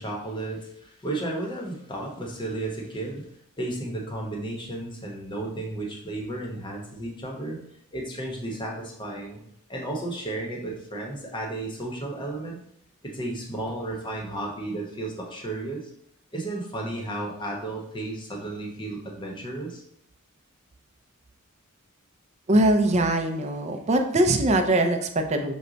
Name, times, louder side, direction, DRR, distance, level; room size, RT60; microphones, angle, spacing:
voice 1, 0.0-3.2 3.6-7.6 7.9-9.4 9.7-12.6 13.0-15.9 16.3-19.8, right 2 dB, 20° left, 0 dB, 0.9 m, -33 dB
voice 2, 22.5-25.5, right 1 dB, 30° right, 5 dB, 0.5 m, -22 dB
6.1 x 2.2 x 3.9 m, 0.73 s
head